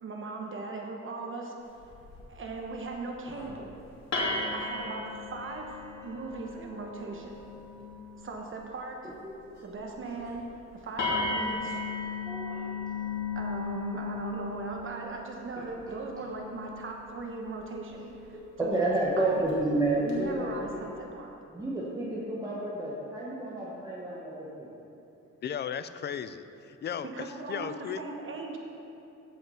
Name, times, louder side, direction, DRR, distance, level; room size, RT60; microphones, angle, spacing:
voice 1, 0.0-1.5 2.3-3.7 4.5-5.8 6.0-7.4 8.2-9.1 9.6-11.8 13.3-19.5 20.0-21.3 27.0-27.7 28.0-28.6, right 3 dB, 40° right, 1 dB, 1.1 m, -39 dB
sound 1, 1.8-2.3 3.1-3.5 4.1-8.4 10.1-10.3 10.5-10.6 11.0-18.0 19.3-19.5 20.1-20.6, left 3 dB, 65° left, 2.8 m, -36 dB
voice 2, 12.2-13.1 15.6-15.7 18.3-20.9 21.5-24.7, right 2 dB, 10° right, -6 dB, 1.2 m, -31 dB
voice 3, 25.4-28.0, left 8 dB, 35° left, 12 dB, 0.4 m, -36 dB
15.0 x 5.8 x 5.7 m, 2.8 s
cardioid pair, 150°, 30 cm